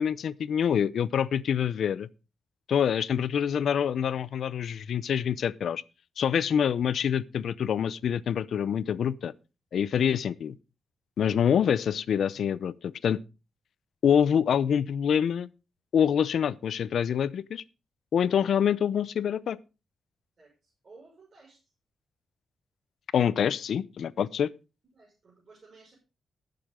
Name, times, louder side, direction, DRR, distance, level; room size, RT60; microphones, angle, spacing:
voice 1, 0.0-2.1 2.7-5.8 6.2-9.3 9.7-10.6 11.2-13.2 14.0-15.5 15.9-17.6 18.1-19.6 23.1-24.5, left 8 dB, 70° left, 0.6 m, -26 dB
voice 2, 20.4-21.7 24.9-25.9, right 3 dB, 40° right, 5.6 m, -55 dB
19.5 x 6.8 x 3.7 m
cardioid pair, 120°, 0 cm